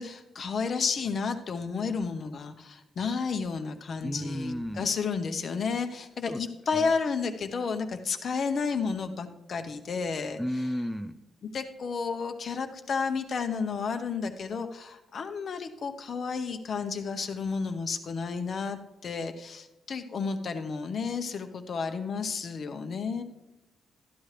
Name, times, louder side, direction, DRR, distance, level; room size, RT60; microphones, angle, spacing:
voice 1, 0.0-10.4 11.5-23.2, left 5 dB, 45° left, 7 dB, 0.8 m, -32 dB
voice 2, 4.0-4.9 6.3-6.4 6.7-7.0 10.4-11.2, equal, 5° right, 10 dB, 0.3 m, -33 dB
13.0 x 11.0 x 3.3 m, 0.98 s
wide cardioid pair, 165°, 0 cm